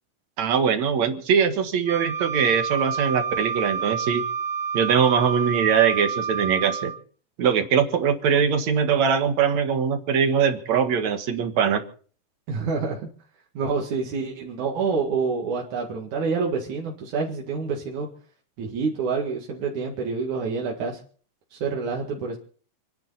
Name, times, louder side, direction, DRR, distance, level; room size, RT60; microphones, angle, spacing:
voice 1, 0.4-4.2 4.7-6.9 7.4-11.8, right 7 dB, 70° right, 7 dB, 2.9 m, -22 dB
Wind instrument woodwind instrument, 1.9-7.0, right 6 dB, 15° right, 6.4 m, -29 dB
voice 2, 12.5-13.1 13.6-18.1 18.6-21.0 21.5-22.4, right 5 dB, 85° right, -1 dB, 3.5 m, -27 dB
29.0 x 10.5 x 4.1 m, 0.43 s
omnidirectional pair, 3.3 m